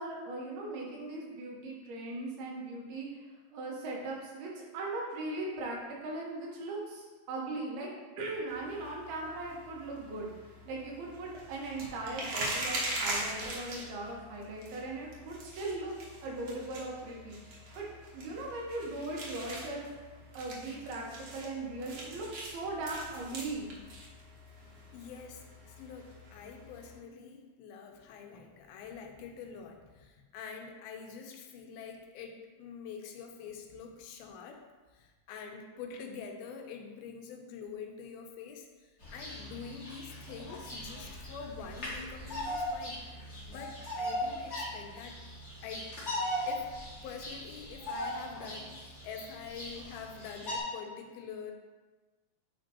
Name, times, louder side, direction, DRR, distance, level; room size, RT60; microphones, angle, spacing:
voice 1, 0.0-7.9 8.2-15.9 16.2-17.9 18.1-19.9 20.3-23.8, right 2 dB, 90° right, -3 dB, 3.1 m, -39 dB
sound 1, 8.5-27.0, right 1 dB, 60° right, 1.8 m, -42 dB
voice 2, 24.9-34.6 34.9-45.2 45.6-45.9 46.5-51.5, left 6 dB, 85° left, 3 dB, 2.5 m, -46 dB
Bird vocalization bird call bird song, 39.0-50.6, equal, 60° left, 0.7 m, -39 dB
8.9 x 5.2 x 2.9 m, 1.3 s
omnidirectional pair, 4.3 m